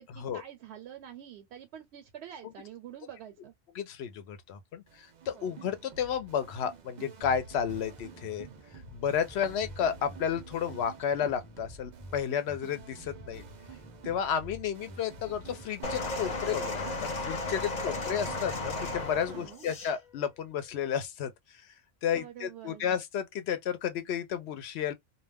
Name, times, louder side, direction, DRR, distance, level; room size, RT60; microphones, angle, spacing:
voice 1, 0.0-3.5 5.3-5.5 19.3-19.7 22.1-22.9, right 10 dB, 80° right, 0.8 m, -47 dB
voice 2, 3.7-8.5 8.9-13.4 14.0-21.3 22.0-24.9, left 8 dB, 80° left, 0.9 m, -32 dB
sound 1, 4.9-19.5, right 4 dB, 55° right, 0.5 m, -49 dB
Bass guitar, 7.2-16.8, equal, 10° left, 0.6 m, -51 dB
sound 2, 15.8-20.0 20.8-21.0, left 2 dB, 45° left, 0.8 m, -34 dB
2.2 x 2.2 x 3.4 m
omnidirectional pair, 1.1 m